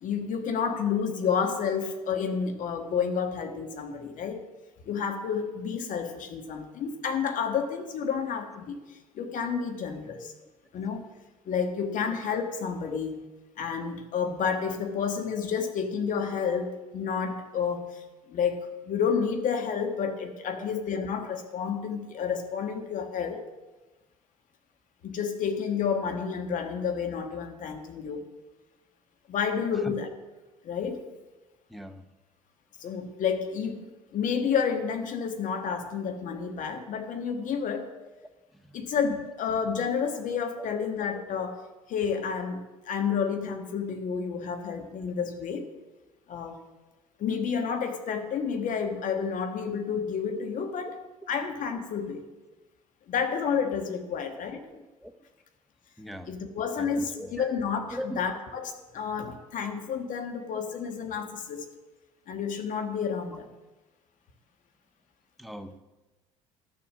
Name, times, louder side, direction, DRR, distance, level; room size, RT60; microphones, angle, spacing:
voice 1, 0.0-4.4 4.8-10.3 10.7-11.1 11.4-13.1 13.6-18.0 18.3-23.5 25.0-28.3 29.3-30.1 30.6-31.1 32.8-37.9 38.7-41.6 41.9-45.7 46.3-46.6 47.2-51.0 51.3-52.3 53.1-54.6 56.3-61.7 62.3-63.5, left 6 dB, 50° left, 6 dB, 1.5 m, -30 dB
voice 2, 10.1-10.5 12.9-13.0 20.6-20.7 29.8-29.9 31.7-32.0 54.1-54.2 54.7-55.1 56.0-56.3 56.8-57.5 57.9-58.2 59.6-59.7 60.5-60.6 65.4-65.8, equal, ahead, 10 dB, 0.9 m, -40 dB
12.0 x 7.2 x 6.3 m, 1.1 s
figure-of-eight pair, 55°, 17 cm